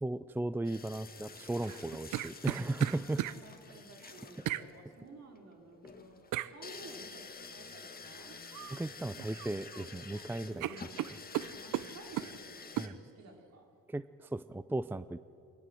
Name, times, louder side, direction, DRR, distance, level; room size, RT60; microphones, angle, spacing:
voice 1, 0.0-3.2 8.7-10.7 12.8-12.9 13.9-15.2, right 2 dB, 5° right, 15 dB, 0.5 m, -36 dB
sound 1, 0.6-12.9, left 5 dB, 30° left, 1.9 m, -50 dB
sound 2, 1.6-3.4 4.5-4.7 6.3-6.5 8.5-8.8 9.2-9.8 10.1-10.3 10.6-12.3 12.8-12.9, right 14 dB, 85° right, 0.7 m, -36 dB
voice 2, 2.8-8.4 10.5-11.2 11.5-13.7, right 3 dB, 60° right, 2 dB, 3.9 m, -54 dB
23.5 x 18.5 x 7.8 m, 2.5 s
cardioid pair, 90°, 30 cm